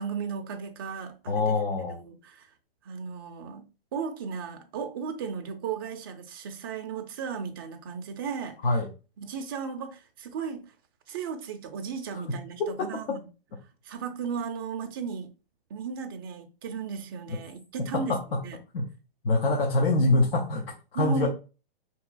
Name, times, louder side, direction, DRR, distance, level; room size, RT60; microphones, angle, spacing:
voice 1, 0.0-1.6 1.9-2.5 2.8-3.6 3.9-8.6 9.2-10.6 11.1-13.3 13.8-15.3 15.7-18.2 18.4-18.6 20.9-21.3, right 6 dB, 25° right, 0.3 m, -35 dB
voice 2, 1.3-2.0 8.6-8.9 12.3-12.4 17.3-17.4 17.9-18.4 18.7-18.9 19.2-21.3, left 2 dB, 70° left, 0.9 m, -25 dB
4.5 x 3.0 x 2.4 m
hypercardioid pair, 145°, 31 cm